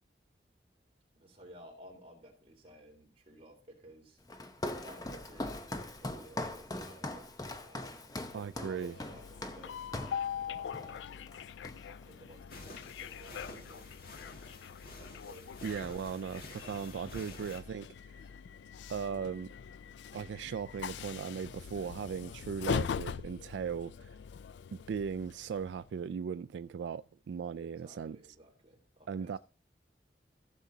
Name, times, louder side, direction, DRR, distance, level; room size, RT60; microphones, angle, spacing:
voice 1, 1.1-4.2 4.8-7.3 7.6-9.8 10.5-11.4 11.9-13.9 15.2-15.5 27.6-29.3, right 1 dB, 35° right, 3.7 m, -55 dB
Walk footsteps, 4.3-10.3 10.7-11.0 11.3-12.1, left 1 dB, 20° left, 0.8 m, -41 dB
voice 2, 8.3-8.9 15.6-17.9 18.9-19.5 20.1-24.2 24.7-28.2 29.1-29.4, right 6 dB, 85° right, 0.3 m, -38 dB
Train, 8.6-25.9, left 7 dB, 85° left, 0.3 m, -42 dB
sound 1, 12.5-17.6, left 2 dB, 55° left, 1.8 m, -50 dB
15.0 x 7.1 x 2.8 m
head